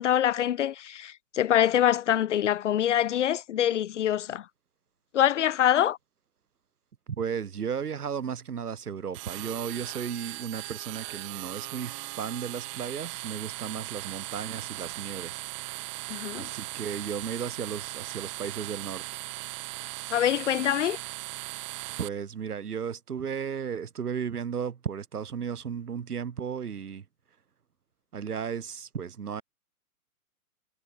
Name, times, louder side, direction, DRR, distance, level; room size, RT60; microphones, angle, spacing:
voice 1, 0.0-4.5 5.1-6.0 16.1-16.5 20.1-21.0, left 11 dB, 55° left, 1.2 m, -25 dB
voice 2, 7.1-15.8 16.3-19.2 22.0-27.0 28.1-29.4, right 7 dB, 80° right, 5.1 m, -35 dB
sound 1, 9.1-22.1, right 24 dB, 20° right, 1.0 m, -38 dB
hypercardioid pair, 155°, 45 cm